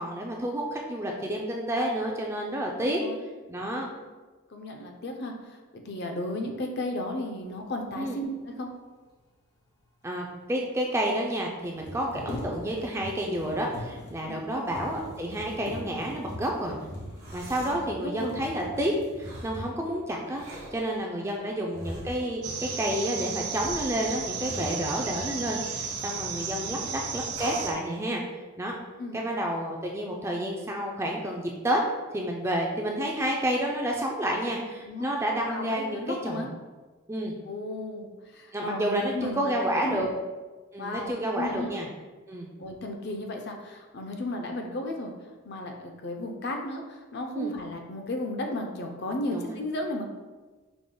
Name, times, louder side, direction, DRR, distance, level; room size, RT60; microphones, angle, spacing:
voice 1, 0.0-3.0 3.5-3.9 8.0-8.2 10.0-16.8 17.3-18.9 19.2-28.2 28.6-28.7 29.1-31.8 32.1-36.4 37.1-37.3 38.5-40.1 40.7-41.9 42.3-42.5 47.3-47.5 49.3-49.5, right 1 dB, 10° right, 0 dB, 0.3 m, -30 dB
voice 2, 2.8-3.2 4.5-8.7 14.2-14.4 17.4-17.9 18.2-18.3 21.1-21.3 26.3-26.7 29.0-29.2 34.9-35.1 35.5-36.5 37.5-40.1 40.8-41.7 42.6-45.1 45.5-50.1, left 1 dB, 50° left, 3 dB, 0.5 m, -34 dB
sound 1, 10.2-10.3 10.4-10.5 11.6-20.0 20.6-20.8 21.2-21.8 22.2-22.7, left 1 dB, 85° left, 1.1 m, -42 dB
sound 2, 17.0-17.8 19.2-19.6 20.3-20.8 21.7-22.3 23.5-25.4 26.0-26.6 27.3-27.8, right 1 dB, 75° right, 1.1 m, -41 dB
sound 3, 22.4-27.7, right 5 dB, 90° right, 0.5 m, -34 dB
4.9 x 2.1 x 3.7 m, 1.3 s
head